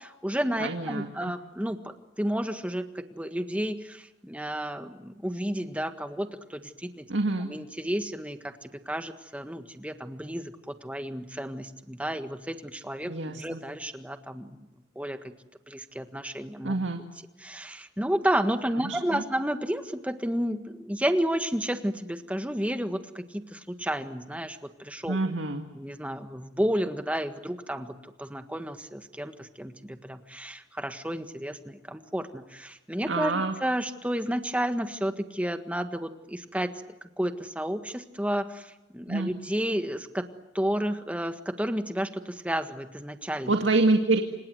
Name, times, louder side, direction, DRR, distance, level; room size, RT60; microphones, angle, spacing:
voice 1, 0.0-7.1 7.4-14.6 14.9-15.3 15.7-16.7 17.4-25.2 25.7-36.7 37.2-40.2 40.5-43.5, equal, 5° right, 8 dB, 1.6 m, -31 dB
voice 2, 0.6-1.3 7.1-7.5 13.1-13.6 16.6-17.0 18.8-19.2 25.1-25.6 33.0-33.5 39.1-39.3 43.5-44.2, right 2 dB, 85° right, 5 dB, 2.1 m, -26 dB
28.5 x 26.5 x 7.9 m, 1.0 s
head